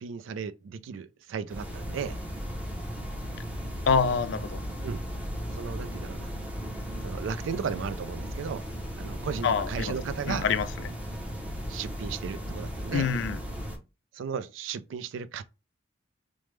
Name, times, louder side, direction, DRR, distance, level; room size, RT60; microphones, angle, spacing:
voice 1, 0.0-2.2 4.8-5.0 5.5-6.3 7.0-8.7 9.0-10.5 10.8-10.9 11.7-13.1 14.1-15.4, right 6 dB, 70° right, 0.3 m, -35 dB
sound 1, 1.5-13.8, equal, 5° right, 0.6 m, -36 dB
voice 2, 3.9-4.6 9.4-9.9 10.3-10.7 12.9-13.4, left 6 dB, 65° left, 0.3 m, -26 dB
3.2 x 2.0 x 3.1 m
head